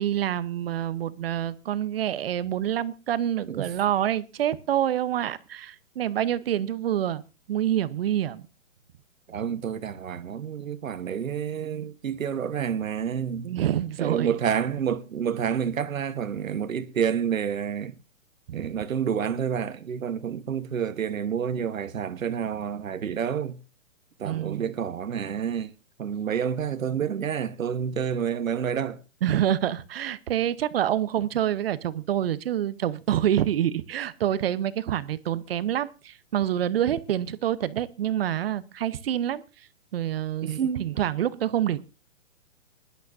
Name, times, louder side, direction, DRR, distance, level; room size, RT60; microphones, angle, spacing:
voice 1, 0.0-7.2 7.5-8.4 13.4-14.4 18.5-18.6 24.2-24.7 29.2-39.4 39.9-41.8, right 11 dB, 45° right, 0.9 m, -27 dB
voice 2, 9.3-13.5 14.0-17.9 18.5-23.6 24.2-25.7 26.0-29.0 40.4-40.8, right 8 dB, 85° right, 1.2 m, -29 dB
22.0 x 11.5 x 2.6 m
hypercardioid pair, 150°, 39 cm